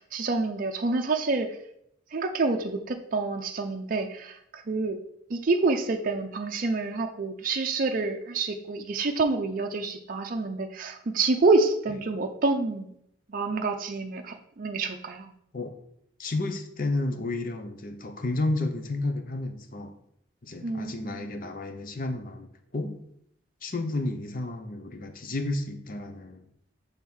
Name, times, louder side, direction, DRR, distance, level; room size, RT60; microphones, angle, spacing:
voice 1, 0.0-1.6 2.1-5.0 5.3-12.9 13.3-15.3 20.6-21.2, right 3 dB, 45° right, 4 dB, 0.5 m, -27 dB
voice 2, 16.2-19.9 20.4-23.0 23.6-26.5, left 2 dB, 45° left, 6 dB, 0.7 m, -31 dB
6.1 x 3.6 x 5.5 m, 0.73 s
head